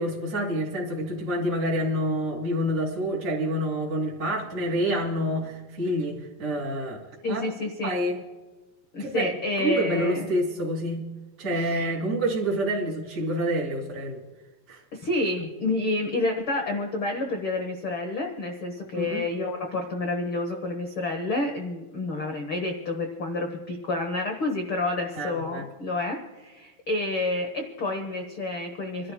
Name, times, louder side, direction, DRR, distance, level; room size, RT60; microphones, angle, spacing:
voice 1, 0.0-7.0 7.2-7.5 7.8-8.2 9.0-9.3 9.6-11.1 11.4-14.2 14.7-14.8 15.4-15.5 18.9-19.2 25.1-25.6, equal, 20° right, -6 dB, 2.2 m, -27 dB
voice 2, 7.2-8.0 8.9-10.3 11.5-11.9 14.9-29.1, left 2 dB, 70° left, 3 dB, 1.2 m, -29 dB
28.5 x 12.5 x 2.3 m, 1.3 s
omnidirectional pair, 4.4 m